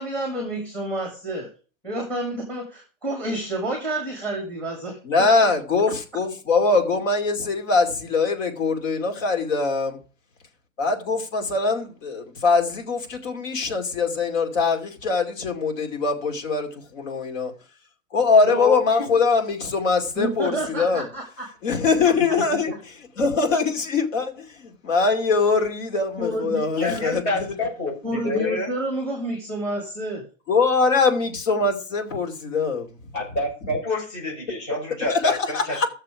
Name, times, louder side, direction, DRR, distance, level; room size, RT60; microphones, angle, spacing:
voice 1, 0.0-1.5 1.8-5.3 20.2-21.4 26.2-27.2 28.0-30.2, right 1 dB, 5° left, 1.6 m, -29 dB
voice 2, 5.0-10.0 10.8-17.5 18.1-21.0 21.6-22.7 23.2-24.2 24.8-27.2 30.5-32.9 35.1-35.9, left 4 dB, 70° left, 2.6 m, -22 dB
voice 3, 18.4-19.1 22.2-22.5 26.7-28.7 33.1-35.8, left 2 dB, 35° left, 5.5 m, -28 dB
14.0 x 6.7 x 4.8 m
supercardioid pair, 180°, 40 cm